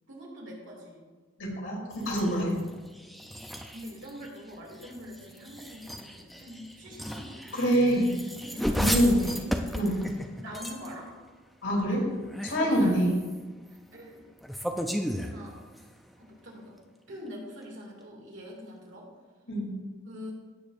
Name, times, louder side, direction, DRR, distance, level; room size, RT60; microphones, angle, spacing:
voice 1, 0.1-1.0 3.7-8.0 8.4-9.4 10.3-11.1 11.9-12.1 12.6-13.0 13.9-14.3 15.2-15.6 16.2-16.8 17.1-19.1 20.1-20.3, equal, 65° right, -2 dB, 2.4 m, -44 dB
voice 2, 1.4-2.5 7.5-8.1 8.7-9.2 9.7-10.0 11.6-12.0 12.4-13.1 19.5-19.7, equal, 75° left, -3 dB, 3.2 m, -25 dB
sound 1, 1.9-11.1 12.1-13.4 14.4-16.0, equal, ahead, 0.5 m, -35 dB
16.0 x 7.0 x 2.6 m, 1.3 s
head